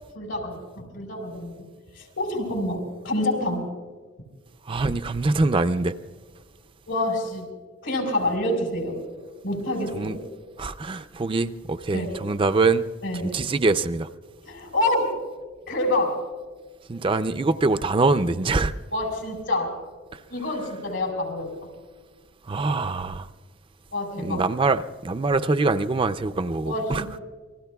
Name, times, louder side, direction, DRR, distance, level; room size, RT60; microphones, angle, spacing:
voice 1, 0.1-1.5 1.9-3.6 6.9-7.4 7.8-9.0 9.4-10.2 11.9-12.2 13.0-13.4 14.4-15.1 15.7-16.2 18.9-19.8 20.3-21.7 23.9-24.4 26.6-27.2, left 1 dB, 85° left, 4.7 m, -27 dB
voice 2, 4.7-5.9 9.9-10.2 10.6-12.9 13.2-14.1 16.9-18.7 22.5-23.3 24.2-27.0, right 3 dB, 25° right, 0.4 m, -24 dB
28.0 x 20.5 x 2.3 m
head